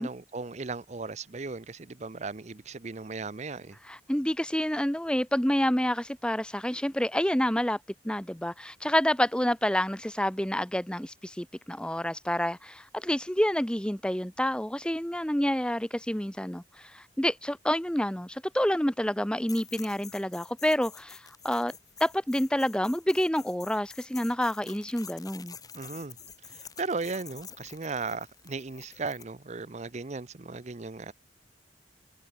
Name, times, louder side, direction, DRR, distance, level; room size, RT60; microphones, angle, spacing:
voice 1, 0.0-3.8 25.7-26.2 26.5-31.1, right 4 dB, 40° right, 0.7 m, -36 dB
voice 2, 3.8-7.8 8.0-21.7 22.0-25.6, equal, 5° left, 1.1 m, -28 dB
sound 1, 19.5-29.3, left 7 dB, 20° left, 3.6 m, -48 dB
head